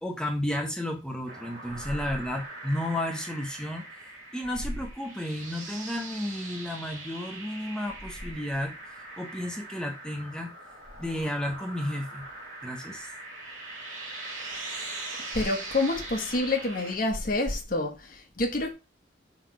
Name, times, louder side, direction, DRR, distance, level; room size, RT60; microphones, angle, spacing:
voice 1, 0.0-3.9 4.3-10.5 11.0-12.3 12.6-13.1, left 1 dB, 5° left, 0.9 m, -32 dB
sound 1, 1.3-17.0, right 2 dB, 45° right, 3.0 m, -41 dB
voice 2, 15.3-18.7, left 2 dB, 50° left, 1.3 m, -28 dB
5.7 x 3.5 x 4.9 m
head